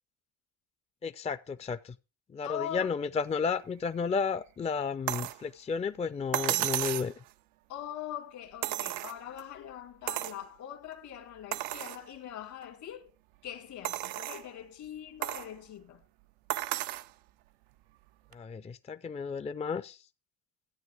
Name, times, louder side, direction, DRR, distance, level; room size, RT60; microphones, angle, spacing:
voice 1, 1.0-2.0 2.3-7.2 18.3-20.1, left 5 dB, 20° left, 0.5 m, -33 dB
voice 2, 2.4-2.9 7.7-13.1 13.4-16.0, left 11 dB, 65° left, 1.9 m, -42 dB
sound 1, 5.1-5.4 6.3-7.1 8.6-9.4 10.1-10.4 10.9-11.0 11.5-12.0 12.6-12.7 13.8-14.5 15.2-15.5 16.5-17.1 18.3-18.4, right 15 dB, 85° right, 0.6 m, -33 dB
14.0 x 9.0 x 3.5 m
hypercardioid pair, 60°, 31 cm